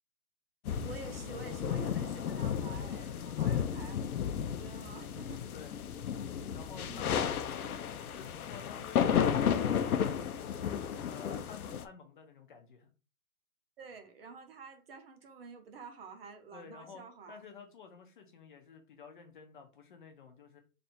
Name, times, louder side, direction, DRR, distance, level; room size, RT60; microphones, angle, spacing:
sound 1, 0.7-11.8, left 8 dB, 80° left, 0.6 m, -33 dB
voice 1, 0.8-4.0 4.3-5.5 6.9-7.2 13.8-17.4, right 5 dB, 45° right, 0.8 m, -49 dB
voice 2, 6.5-10.6 11.0-12.9 16.5-20.6, left 5 dB, 35° left, 0.7 m, -52 dB
3.3 x 2.7 x 4.2 m
hypercardioid pair, 160°, 43 cm